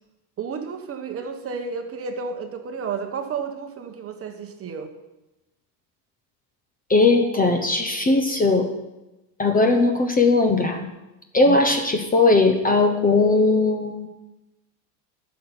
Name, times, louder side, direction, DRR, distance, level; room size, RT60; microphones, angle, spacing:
voice 1, 0.4-4.9 11.4-11.7, right 5 dB, 30° right, 6 dB, 1.1 m, -32 dB
voice 2, 6.9-8.7 9.4-10.9 11.3-14.1, left 3 dB, 20° left, 6 dB, 0.8 m, -19 dB
9.9 x 6.6 x 8.7 m, 1.0 s
supercardioid pair, 130°, 49 cm